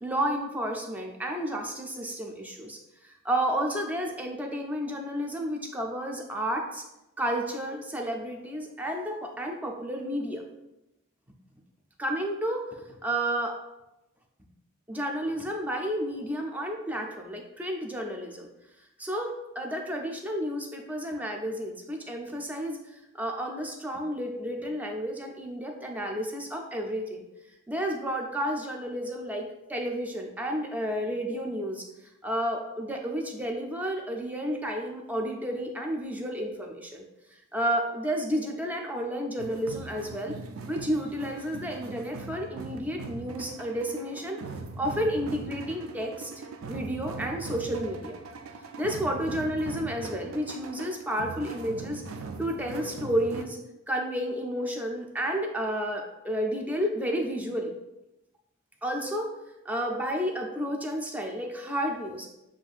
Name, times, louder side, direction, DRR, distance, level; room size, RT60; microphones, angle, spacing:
voice 1, 0.0-2.8 3.0-6.8 7.2-10.4 12.0-13.6 14.9-18.5 19.0-27.2 27.7-31.9 32.2-37.0 37.5-40.4 40.7-44.4 44.8-48.2 48.8-52.0 52.4-53.6 53.9-57.7 58.8-59.3 59.7-62.3, equal, 10° right, 1 dB, 0.4 m, -31 dB
sound 1, 39.4-53.4, right 3 dB, 75° right, 0.4 m, -40 dB
7.3 x 2.6 x 2.4 m, 0.92 s
head